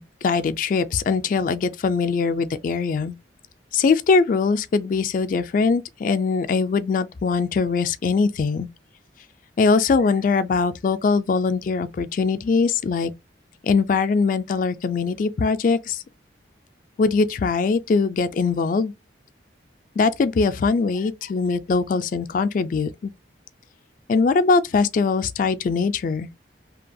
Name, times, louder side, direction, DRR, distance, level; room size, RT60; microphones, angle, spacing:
voice 1, 0.0-3.1 3.7-8.7 9.6-13.1 13.6-16.0 17.0-18.9 20.0-23.1 24.1-26.3, left 4 dB, 45° left, 0.3 m, -21 dB
2.8 x 2.2 x 2.5 m
head